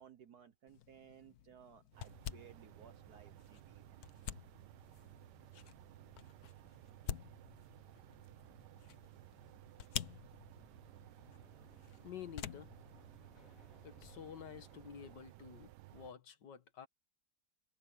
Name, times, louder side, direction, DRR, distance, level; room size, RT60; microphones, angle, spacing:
voice 1, 0.0-4.0, right 8 dB, 65° right, 1.5 m, -59 dB
sound 1, 0.7-14.2, left 10 dB, 65° left, 1.3 m, -50 dB
sound 2, 1.9-16.1, right 18 dB, 80° right, 1.2 m, -58 dB
sound 3, 7.3-15.2, left 2 dB, 50° left, 5.4 m, -70 dB
voice 2, 12.0-12.7 13.8-16.9, left 8 dB, 85° left, 2.0 m, -50 dB
omnidirectional pair, 1.8 m